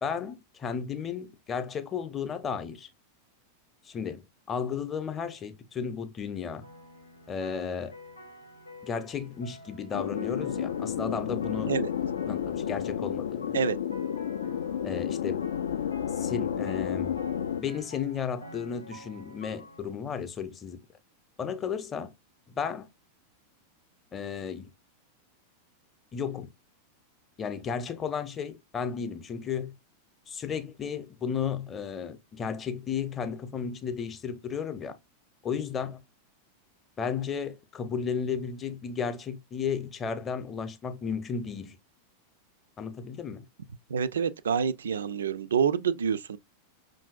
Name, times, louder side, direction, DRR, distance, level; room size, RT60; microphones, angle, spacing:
voice 1, 0.0-2.9 3.8-6.6 7.3-7.9 8.8-11.7 12.3-13.6 14.8-15.5 16.2-17.1 17.6-20.8 21.4-22.1 22.5-22.9 24.1-24.7 26.1-26.5 27.4-29.7 30.3-35.0 35.4-36.0 37.0-41.8 42.8-43.5, left 6 dB, 25° left, 0.7 m, -34 dB
sound 1, 6.6-19.9, left 1 dB, 85° left, 0.7 m, -49 dB
sound 2, 9.9-17.6, left 9 dB, 65° left, 0.3 m, -31 dB
voice 2, 43.9-46.4, right 7 dB, 65° right, 0.3 m, -27 dB
5.6 x 2.6 x 2.4 m
figure-of-eight pair, 90°, 0 cm